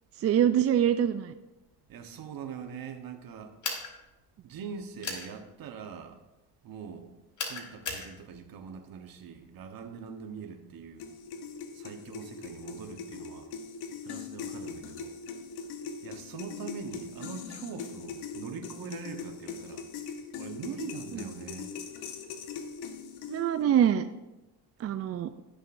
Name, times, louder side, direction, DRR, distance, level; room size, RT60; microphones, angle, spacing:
voice 1, 0.2-1.3 23.3-24.1 24.8-25.4, right 10 dB, 40° right, 0.4 m, -24 dB
voice 2, 1.9-3.6 4.4-6.2 6.6-7.1 7.4-11.1 11.7-13.5 14.0-15.2 16.0-21.7, right 6 dB, 60° right, 1.2 m, -42 dB
sound 1, 3.6-3.9 5.0-5.3 7.4-8.1, left 4 dB, 45° left, 2.0 m, -34 dB
sound 2, 11.0-23.6, left 5 dB, 80° left, 1.1 m, -41 dB
16.5 x 6.4 x 2.6 m
cardioid pair, 105°, 40 cm